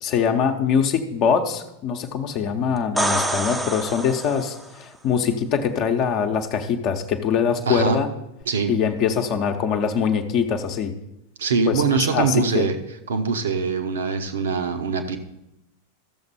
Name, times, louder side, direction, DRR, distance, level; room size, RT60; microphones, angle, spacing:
voice 1, 0.0-8.1 8.7-11.0 11.7-12.7, left 7 dB, 40° left, 5 dB, 0.9 m, -23 dB
sound 1, 2.8-4.7 8.4-8.5, right 1 dB, 10° right, 0.7 m, -26 dB
voice 2, 7.7-8.0 8.5-8.7 11.4-12.8 13.1-15.2, right 5 dB, 65° right, 7 dB, 1.0 m, -23 dB
14.5 x 6.8 x 4.2 m, 0.87 s
figure-of-eight pair, 90°, 0 cm